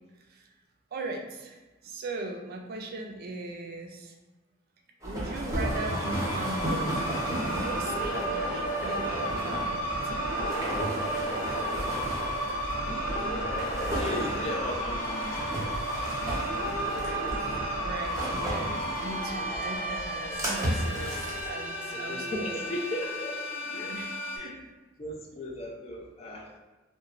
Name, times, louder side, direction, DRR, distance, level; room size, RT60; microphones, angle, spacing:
voice 1, 0.9-4.1 5.0-7.1 7.7-10.3 16.9-17.3 17.8-22.6 23.7-24.6, right 2 dB, 50° right, 3 dB, 0.4 m, -39 dB
sound 1, 5.0-21.5, right 1 dB, 15° right, 0.7 m, -35 dB
sound 2, 5.5-24.4, right 1 dB, 80° left, 0.6 m, -32 dB
voice 2, 12.9-13.6 14.0-15.7 18.4-18.7 21.9-23.3 23.7-23.9 24.4-24.5 25.0-26.5, left 1 dB, 30° left, -1 dB, 0.3 m, -37 dB
3.0 x 2.1 x 2.4 m, 1.1 s
head